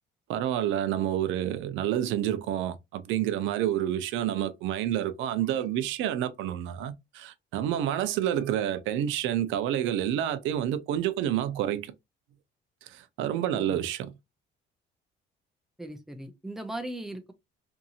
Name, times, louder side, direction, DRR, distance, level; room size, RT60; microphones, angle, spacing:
voice 1, 0.3-11.9 12.9-14.1, right 11 dB, 90° right, 0.4 m, -29 dB
voice 2, 13.4-13.8 15.8-17.3, right 1 dB, ahead, 0.3 m, -38 dB
2.7 x 2.6 x 2.4 m
cardioid pair, 175°, 20 cm